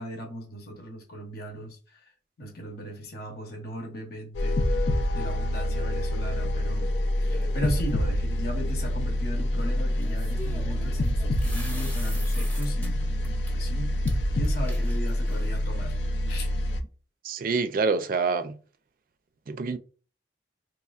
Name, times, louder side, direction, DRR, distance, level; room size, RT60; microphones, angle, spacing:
voice 1, 0.0-2.0 2.4-6.9 7.2-13.9 14.3-15.9 16.3-16.5, equal, 60° left, 0.9 m, -37 dB
sound 1, 4.3-16.8, left 1 dB, 80° left, 0.5 m, -26 dB
sound 2, 7.3-8.0 10.0-12.9 13.2-13.5 14.1-14.2 14.4-15.6, left 1 dB, 10° left, 0.8 m, -43 dB
voice 2, 17.2-18.6 19.5-19.8, right 4 dB, 50° right, 0.4 m, -26 dB
4.3 x 3.1 x 2.4 m
head